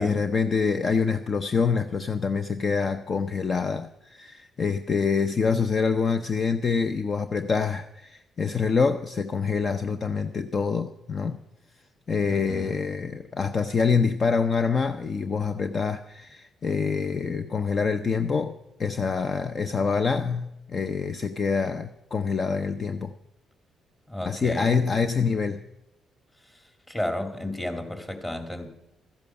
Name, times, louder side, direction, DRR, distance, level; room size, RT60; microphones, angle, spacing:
voice 1, 0.0-11.4 12.1-23.1 24.2-25.6, left 5 dB, 40° left, 9 dB, 0.6 m, -26 dB
voice 2, 12.3-12.8 24.1-24.7 26.5-26.6 26.9-28.7, left 1 dB, 15° left, 6 dB, 2.3 m, -32 dB
13.5 x 10.5 x 7.0 m, 0.86 s
cardioid pair, 90°, 0 cm